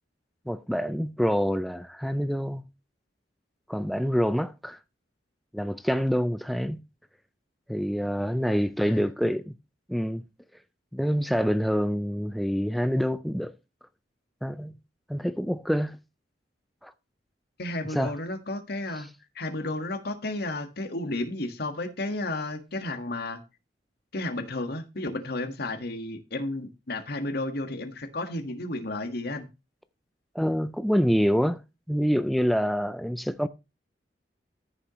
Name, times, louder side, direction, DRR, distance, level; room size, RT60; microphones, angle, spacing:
voice 1, 0.5-2.6 3.7-4.8 5.5-6.8 7.7-9.5 9.9-10.2 10.9-13.5 14.4-14.7 15.1-16.0 16.8-16.9 17.9-18.1 30.3-31.6 31.9-33.5, equal, ahead, 0.4 m, -26 dB
voice 2, 17.6-19.1 19.3-23.4 24.1-29.5, left 2 dB, 60° left, 1.6 m, -32 dB
14.0 x 6.8 x 3.1 m
head